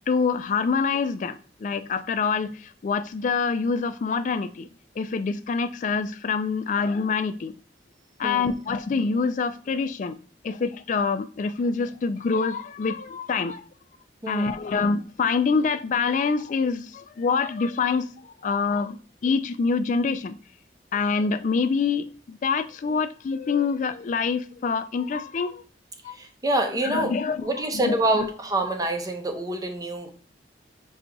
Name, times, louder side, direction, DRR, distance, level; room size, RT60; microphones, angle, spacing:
voice 1, 0.1-4.7 5.0-7.5 8.2-10.2 10.4-13.6 14.3-20.4 20.9-25.6 26.0-26.1 26.8-27.5 27.7-28.0, left 5 dB, 45° left, 0.3 m, -26 dB
voice 2, 8.2-8.5 14.2-14.5 26.1-27.1 27.4-30.1, right 2 dB, 20° right, 0.7 m, -26 dB
6.0 x 2.3 x 3.8 m
head